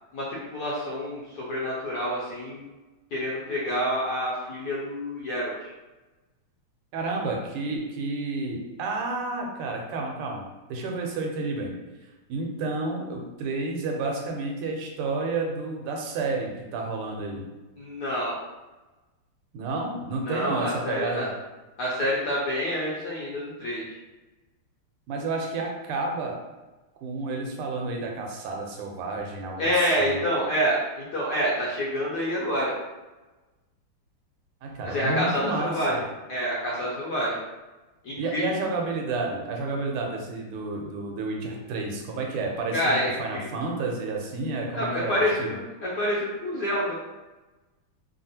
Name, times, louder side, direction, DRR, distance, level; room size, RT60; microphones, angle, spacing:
voice 1, 0.1-2.7 3.1-5.7 17.8-18.4 20.2-21.3 21.8-24.0 29.6-32.7 34.8-36.0 36.3-37.4 38.0-38.5 42.7-43.5 44.7-47.0, equal, 70° left, -6 dB, 1.0 m, -27 dB
voice 2, 6.9-11.7 12.3-17.5 19.5-21.3 25.1-26.4 27.0-30.2 34.6-36.0 38.2-45.6, right 3 dB, 90° right, 1 dB, 1.6 m, -31 dB
3.5 x 2.4 x 2.7 m, 1.1 s
omnidirectional pair, 2.4 m